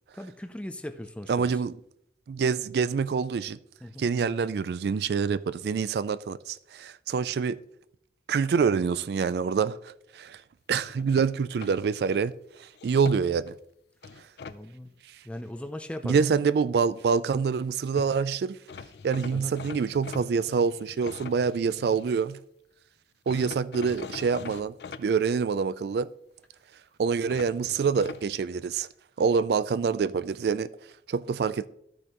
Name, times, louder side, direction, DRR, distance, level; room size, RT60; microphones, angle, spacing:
voice 1, 0.1-1.6 3.8-4.1 14.5-14.9 15.2-16.2 19.3-19.6, left 1 dB, 5° left, 0.4 m, -38 dB
voice 2, 1.3-1.8 2.3-3.6 4.0-7.6 8.3-10.4 10.7-12.3 12.6-13.5 16.0-18.6 19.0-22.4 23.3-26.1 27.0-28.9 29.2-30.7 31.1-31.7, right 5 dB, 60° right, 0.3 m, -26 dB
sound 1, 10.8-12.2 12.7-13.5 14.0-14.6 17.7-17.8 18.0-18.1 18.7-22.2 23.3-25.0 27.3-28.2, left 5 dB, 65° left, 0.4 m, -43 dB
13.5 x 6.3 x 3.0 m
head